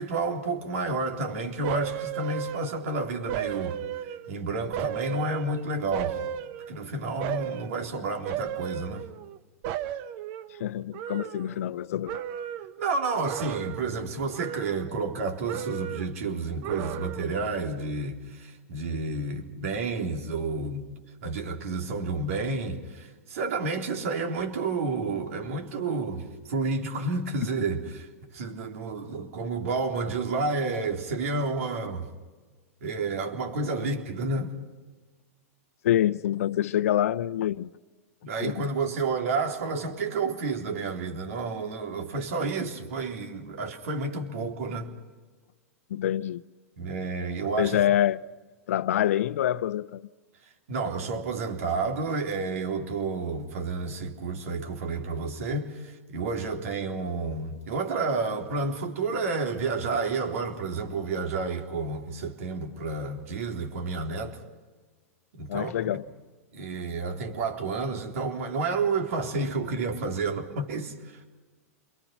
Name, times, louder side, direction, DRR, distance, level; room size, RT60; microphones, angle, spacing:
voice 1, 0.0-3.8 4.3-6.2 6.7-9.1 12.8-20.9 21.2-32.1 32.8-34.5 38.2-44.9 46.8-47.8 50.7-64.4 65.3-65.7 66.5-71.3, right 3 dB, 70° right, 3.9 m, -30 dB
sound 1, 1.6-2.9 3.3-4.4 4.7-6.8 7.2-7.8 8.2-9.4 9.6-11.8 12.1-12.8 13.2-14.0 14.3-15.2 15.5-16.2 16.6-17.4 17.8-17.9, right 10 dB, 50° right, 1.1 m, -35 dB
voice 2, 10.6-12.2 35.8-37.7 38.4-38.7 45.9-46.4 47.6-48.2 48.7-50.1 65.5-66.0, left 12 dB, 70° left, 0.7 m, -26 dB
28.0 x 23.0 x 5.9 m
hypercardioid pair, 110°, 8 cm